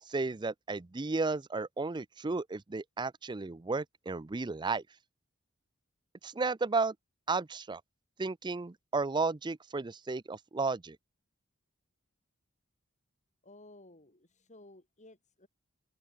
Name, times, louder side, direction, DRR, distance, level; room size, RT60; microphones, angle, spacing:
voice 1, 0.1-4.8 6.2-6.9 7.3-7.8 8.2-11.0, right 3 dB, 20° right, 0.5 m, -33 dB
voice 2, 13.4-15.5, left 2 dB, 35° left, 4.6 m, -56 dB
head